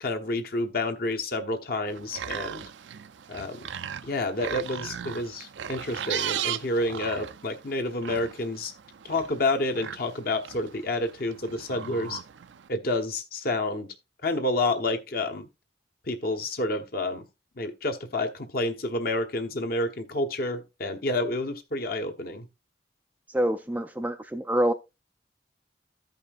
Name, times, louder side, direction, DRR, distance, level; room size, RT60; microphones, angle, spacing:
voice 1, 0.0-2.7 3.3-3.7 4.0-8.7 9.0-12.2 12.7-13.9 14.2-15.5 16.1-17.3 17.6-22.5, left 2 dB, 50° left, 1.0 m, -29 dB
sound 1, 1.9-12.7, right 9 dB, 75° right, 0.5 m, -37 dB
voice 2, 23.3-24.7, right 1 dB, 10° right, 0.3 m, -26 dB
14.5 x 5.4 x 2.5 m
head